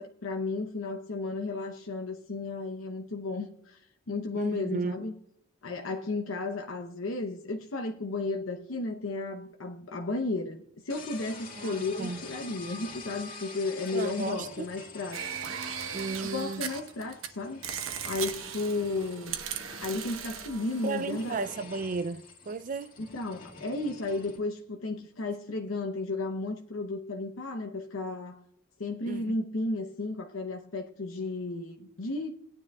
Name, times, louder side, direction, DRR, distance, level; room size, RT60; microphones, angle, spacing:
voice 1, 0.0-5.1 5.6-15.3 16.3-17.6 18.0-19.4 19.8-21.4 23.0-28.4 28.8-32.3, left 3 dB, 75° left, 0.8 m, -34 dB
voice 2, 4.4-5.0 11.6-12.2 13.9-14.7 15.9-16.6 20.8-23.0 29.1-29.4, right 4 dB, 40° right, 0.4 m, -34 dB
sound 1, 10.9-24.4, left 3 dB, 40° left, 1.9 m, -47 dB
sound 2, 15.1-17.3 17.6-21.5, right 8 dB, 75° right, 1.1 m, -38 dB
19.5 x 9.8 x 2.3 m
head